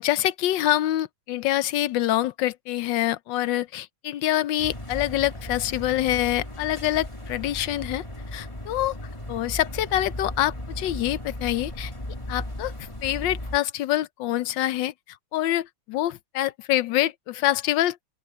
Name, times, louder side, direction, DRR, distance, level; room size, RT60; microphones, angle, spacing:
voice 1, 0.0-8.0 8.3-9.0 9.3-11.9 12.3-12.7 13.0-14.9 15.3-18.0, left 14 dB, 75° left, 1.4 m, -25 dB
sound 1, 4.6-13.6, left 1 dB, 15° left, 2.7 m, -36 dB
open air
omnidirectional pair, 2.1 m